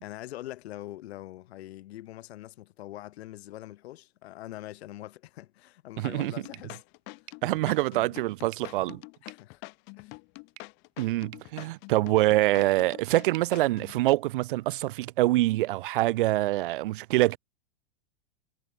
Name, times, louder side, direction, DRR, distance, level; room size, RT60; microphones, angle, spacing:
voice 1, 0.0-6.8 9.2-9.6 10.0-10.1, left 15 dB, 85° left, 0.6 m, -43 dB
voice 2, 6.0-6.3 7.4-9.0 11.0-17.4, right 17 dB, 55° right, 0.5 m, -25 dB
sound 1, 6.2-14.0, left 31 dB, 35° left, 1.9 m, -45 dB
sound 2, 6.5-14.6, right 32 dB, 40° right, 3.8 m, -56 dB
supercardioid pair, 165°, 31 cm